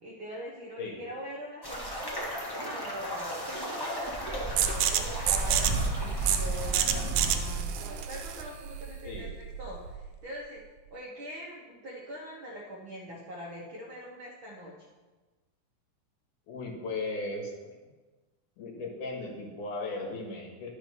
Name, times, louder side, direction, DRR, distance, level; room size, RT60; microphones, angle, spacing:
voice 1, 0.0-2.4 2.7-9.3 9.6-10.6 10.9-14.7, equal, 60° right, -4 dB, 1.4 m, -43 dB
sound 1, 1.6-8.0, right 1 dB, 25° left, 0.5 m, -33 dB
sound 2, 4.6-10.1, right 10 dB, 80° right, 2.2 m, -30 dB
voice 2, 16.5-17.8 18.6-20.7, left 2 dB, 75° left, 0 dB, 3.1 m, -37 dB
11.0 x 5.9 x 5.5 m, 1.3 s
omnidirectional pair, 3.7 m